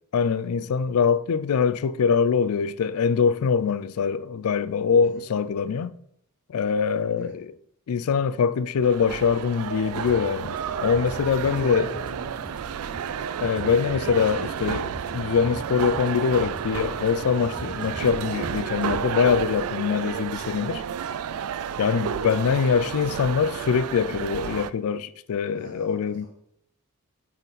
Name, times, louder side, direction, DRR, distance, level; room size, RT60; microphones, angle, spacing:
voice 1, 0.1-5.9 6.5-7.6 7.9-11.9 13.4-20.8 21.8-26.3, left 6 dB, 70° left, 0.4 m, -23 dB
sound 1, 8.8-24.7, right 8 dB, 70° right, 0.3 m, -31 dB
sound 2, 10.0-19.0, right 1 dB, 20° right, 0.7 m, -42 dB
voice 2, 11.5-12.8 25.5-25.9 26.2-26.3, left 2 dB, 55° right, 2.9 m, -41 dB
8.9 x 4.1 x 4.1 m
head